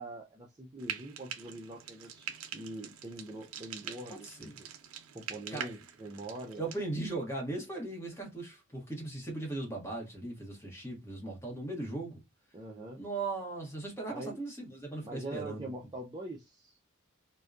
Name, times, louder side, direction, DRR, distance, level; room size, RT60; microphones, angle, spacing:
voice 1, 0.0-4.7 5.1-6.7 12.5-13.0 14.1-14.4 15.0-16.8, right 1 dB, 20° right, 0.4 m, -43 dB
Frying (food), 0.8-6.8, right 8 dB, 80° right, 0.4 m, -44 dB
voice 2, 4.1-4.6 5.5-5.7 6.6-12.2 13.0-15.7, right 2 dB, 10° left, 0.9 m, -38 dB
2.6 x 2.1 x 2.3 m
head